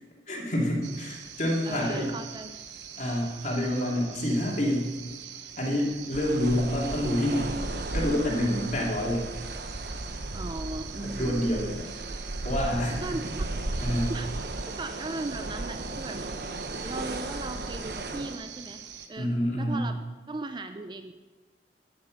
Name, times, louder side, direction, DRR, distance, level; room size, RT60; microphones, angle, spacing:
voice 1, 0.3-2.1 3.0-4.9 5.6-7.6 7.9-9.3 11.0-11.9 12.4-13.0 13.8-14.1 19.2-19.9, equal, 40° left, -2 dB, 2.7 m, -27 dB
sound 1, 0.8-19.1, right 8 dB, 80° right, 1.0 m, -44 dB
voice 2, 1.6-2.5 10.3-11.4 13.0-13.5 14.1-14.3 14.7-16.2 16.8-18.8 19.1-19.3 19.6-21.1, right 2 dB, 25° right, 8 dB, 0.4 m, -37 dB
sound 2, 6.1-18.4, right 2 dB, 55° right, 0.9 m, -35 dB
10.5 x 8.8 x 6.4 m, 1.3 s
head